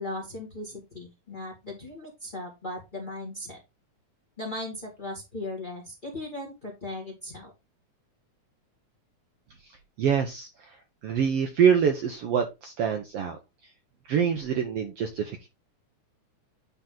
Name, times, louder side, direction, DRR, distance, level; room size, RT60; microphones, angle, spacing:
voice 1, 0.0-3.6 4.4-7.5, left 2 dB, 20° left, -1 dB, 1.5 m, -37 dB
voice 2, 10.0-10.7 11.0-13.4 14.1-15.5, right 7 dB, 70° right, 5 dB, 1.6 m, -25 dB
9.1 x 4.1 x 3.7 m, 0.24 s
omnidirectional pair, 3.5 m